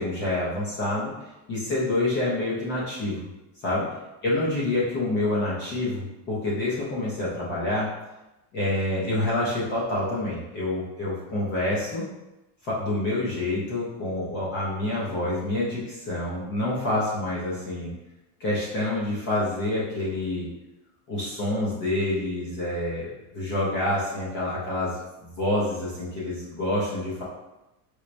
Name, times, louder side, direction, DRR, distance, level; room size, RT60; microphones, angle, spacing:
voice 1, 0.0-3.3 3.6-3.8 4.2-7.9 8.5-12.0 12.6-17.9 18.4-20.5 21.1-27.2, left 1 dB, 25° left, -7 dB, 0.4 m, -27 dB
4.4 x 2.0 x 2.5 m, 0.96 s
cardioid pair, 175°, 49 cm